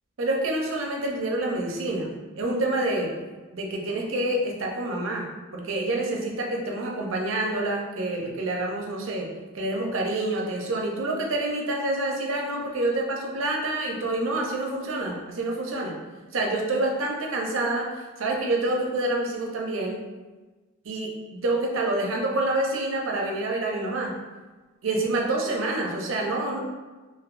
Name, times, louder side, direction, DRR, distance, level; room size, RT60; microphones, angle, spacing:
voice 1, 0.2-3.1 3.5-5.3 5.5-9.3 9.5-15.9 16.3-20.0 20.8-24.2 24.8-26.6, right 2 dB, 70° right, 0 dB, 0.6 m, -27 dB
3.3 x 2.6 x 2.5 m, 1.2 s
head